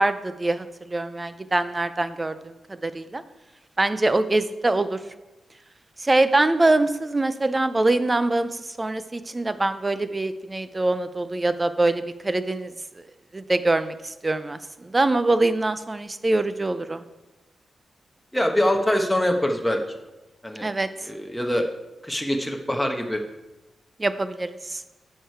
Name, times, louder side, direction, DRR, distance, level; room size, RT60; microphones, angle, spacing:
voice 1, 0.0-3.2 3.8-5.0 6.0-12.7 13.3-13.9 14.2-17.0 20.6-20.9 24.0-24.8, right 2 dB, 25° right, 12 dB, 0.6 m, -24 dB
voice 2, 18.3-19.8 20.4-20.7 21.1-21.7 22.0-23.2, left 1 dB, 5° left, 2 dB, 1.1 m, -23 dB
9.9 x 6.6 x 4.6 m, 1.1 s
cardioid pair, 70°, 0 cm